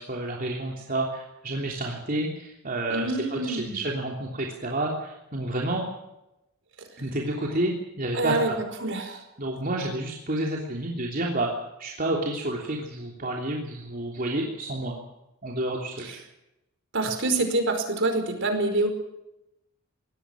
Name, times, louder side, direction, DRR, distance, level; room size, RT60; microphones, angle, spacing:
voice 1, 0.0-5.8 7.0-8.6 9.4-11.5 11.8-14.9 15.4-16.2, right 1 dB, 40° right, -1 dB, 3.2 m, -30 dB
voice 2, 2.9-3.8 8.1-8.5 8.8-9.2 16.9-18.9, right 2 dB, 55° right, 6 dB, 5.0 m, -26 dB
24.0 x 18.5 x 6.3 m, 0.89 s
head